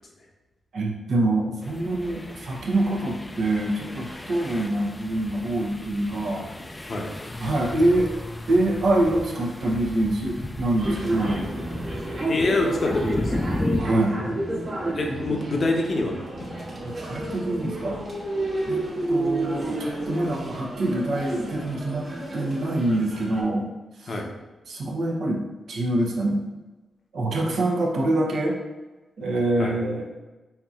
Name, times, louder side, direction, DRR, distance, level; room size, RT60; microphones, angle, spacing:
voice 1, 0.7-6.5 7.4-8.1 8.5-11.4 13.8-14.2 15.1-15.4 16.8-18.0 18.7-22.1 22.3-23.7 24.0-24.1 24.7-25.4 25.7-26.4 27.1-28.6 29.2-30.0, right 1 dB, 75° right, -1 dB, 0.7 m, -25 dB
sound 1, 1.6-13.8, left 1 dB, 25° left, 0.3 m, -35 dB
sound 2, 10.8-23.4, right 1 dB, 55° right, 1.2 m, -30 dB
voice 2, 12.3-13.4 14.9-16.2 24.1-24.3 29.6-29.7, left 2 dB, 55° left, 1 dB, 0.7 m, -25 dB
4.5 x 2.8 x 2.4 m, 1.2 s
cardioid pair, 55°, 0 cm